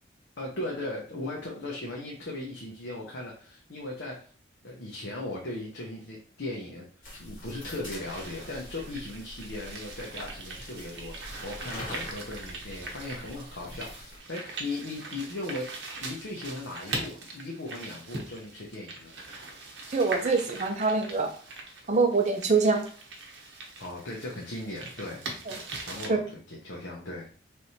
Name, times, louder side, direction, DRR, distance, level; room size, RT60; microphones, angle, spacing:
voice 1, 0.4-4.3 4.6-6.9 7.2-15.7 16.0-19.1 23.8-25.2 25.8-26.2 26.5-27.3, left 2 dB, 85° left, -2 dB, 0.9 m, -38 dB
sound 1, 7.0-14.2, left 1 dB, 45° left, 1.9 m, -44 dB
sound 2, 8.0-26.1, right 2 dB, 70° right, 0.9 m, -41 dB
voice 2, 19.9-21.3 21.9-22.8 25.5-25.6 26.1-26.2, right 4 dB, 40° right, 4 dB, 0.7 m, -24 dB
4.4 x 3.3 x 2.8 m, 0.42 s
head